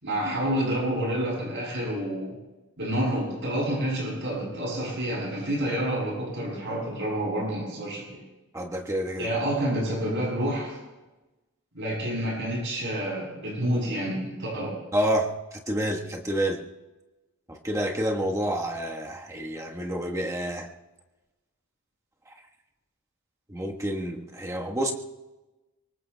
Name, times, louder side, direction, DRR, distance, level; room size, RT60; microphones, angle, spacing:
voice 1, 0.0-2.4 2.8-8.2 9.2-10.8 11.7-14.8, right 1 dB, 55° right, -5 dB, 7.8 m, -28 dB
voice 2, 8.5-9.3 14.9-16.6 17.5-20.7 23.5-24.9, right 1 dB, 15° right, 1 dB, 1.3 m, -28 dB
25.0 x 23.0 x 2.3 m, 1.1 s
head